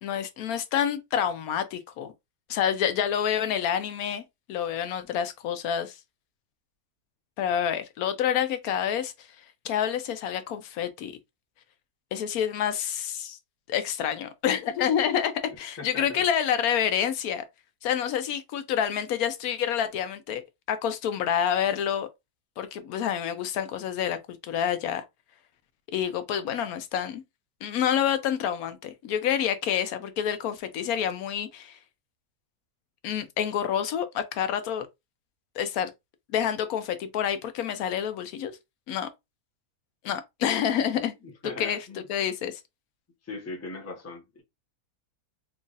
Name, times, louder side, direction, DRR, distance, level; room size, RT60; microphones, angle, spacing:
voice 1, 0.0-2.1 2.5-6.0 7.4-9.1 9.6-11.1 12.1-13.4 13.7-17.4 17.8-20.4 20.7-22.1 22.6-24.2 24.4-25.0 25.9-27.2 27.6-31.8 33.0-34.9 35.6-35.9 36.3-38.5 38.9-39.1 40.0-41.1 41.4-42.6, left 9 dB, 75° left, 1.0 m, -28 dB
voice 2, 15.8-16.3 41.2-42.0 43.2-44.4, left 3 dB, 15° left, 0.7 m, -39 dB
3.0 x 2.4 x 3.8 m
omnidirectional pair, 1.6 m